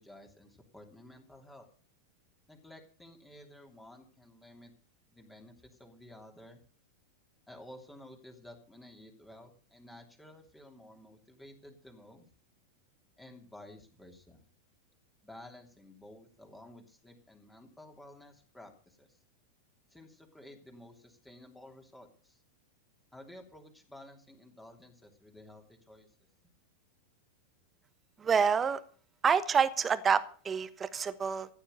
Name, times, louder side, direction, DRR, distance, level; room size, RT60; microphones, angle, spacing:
voice 1, 0.0-1.7 2.5-4.7 5.1-6.6 7.5-12.3 13.2-14.4 15.2-19.2 19.9-22.4 23.1-26.1, left 1 dB, 5° left, 3 dB, 3.1 m, -53 dB
voice 2, 28.2-28.8 29.2-31.5, right 6 dB, 20° right, 13 dB, 1.2 m, -27 dB
14.5 x 10.0 x 6.7 m, 0.42 s
figure-of-eight pair, 90°, 0 cm